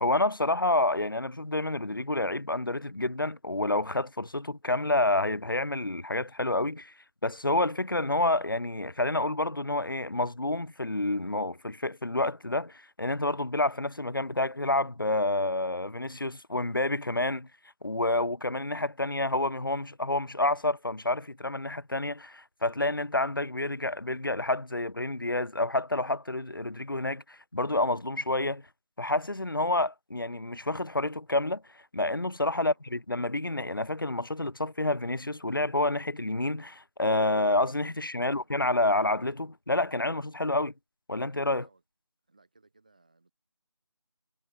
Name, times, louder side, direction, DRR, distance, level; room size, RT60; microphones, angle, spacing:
voice 1, 0.0-6.9 7.2-17.5 17.8-28.6 29.0-31.6 31.9-40.7 41.1-41.6, left 2 dB, 45° left, 0.8 m, -29 dB
voice 2, 38.1-38.5 41.5-41.8 42.3-43.3, right 3 dB, 15° right, 4.6 m, -64 dB
figure-of-eight pair, 180°, 15 cm